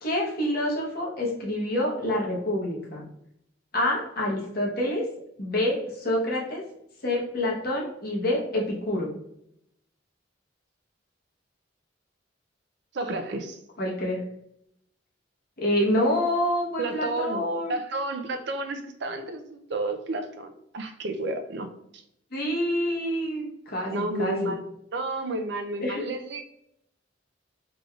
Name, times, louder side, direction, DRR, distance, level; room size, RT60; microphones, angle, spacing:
voice 1, 0.0-3.0 3.7-5.0 5.4-6.6 7.0-9.1 13.8-14.2 15.6-17.8 22.3-23.9 24.2-24.5 25.8-26.0, left 1 dB, 55° left, -3 dB, 1.1 m, -27 dB
voice 2, 12.9-13.6 16.8-21.7 21.9-22.0 23.9-24.6 24.9-26.4, right 2 dB, 60° right, 6 dB, 0.4 m, -31 dB
3.8 x 3.3 x 2.3 m, 0.77 s
head